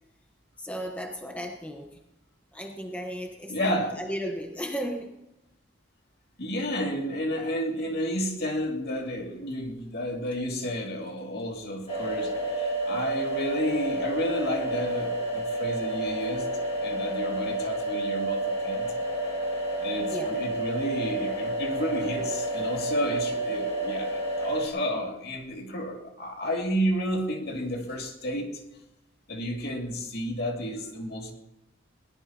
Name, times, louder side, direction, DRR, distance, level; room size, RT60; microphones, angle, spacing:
voice 1, 0.6-1.9 2.5-5.1 20.1-20.4, equal, 5° left, 1 dB, 1.1 m, -35 dB
voice 2, 3.5-4.0 6.4-16.5 16.8-18.9 19.8-28.6 29.3-31.3, equal, 55° left, 1 dB, 2.5 m, -31 dB
sound 1, 11.9-24.7, right 1 dB, 30° left, 2.3 m, -30 dB
21.5 x 18.5 x 2.9 m, 0.93 s
head